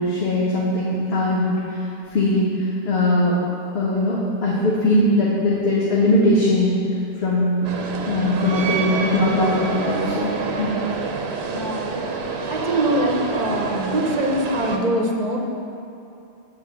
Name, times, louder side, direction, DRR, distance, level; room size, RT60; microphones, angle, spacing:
voice 1, 0.0-1.8 2.1-2.4 2.8-3.3 3.7-6.7 7.2-7.7 8.0-10.3 10.6-10.7, left 1 dB, 85° left, -6 dB, 1.3 m, -20 dB
sound 1, 7.6-14.8, right 4 dB, 85° right, 1.0 m, -27 dB
voice 2, 11.5-12.2 12.5-15.4, right 1 dB, 45° right, 0 dB, 0.9 m, -23 dB
7.3 x 4.4 x 6.7 m, 2.7 s
omnidirectional pair, 1.0 m